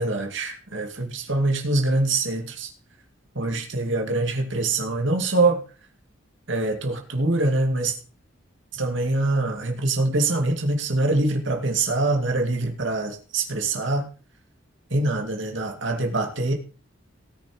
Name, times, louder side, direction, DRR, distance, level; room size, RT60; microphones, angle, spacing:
voice 1, 0.0-2.7 3.3-5.6 6.5-8.0 8.7-14.1 14.9-16.5, right 2 dB, 65° right, 3 dB, 2.4 m, -24 dB
18.0 x 6.6 x 5.0 m, 0.36 s
head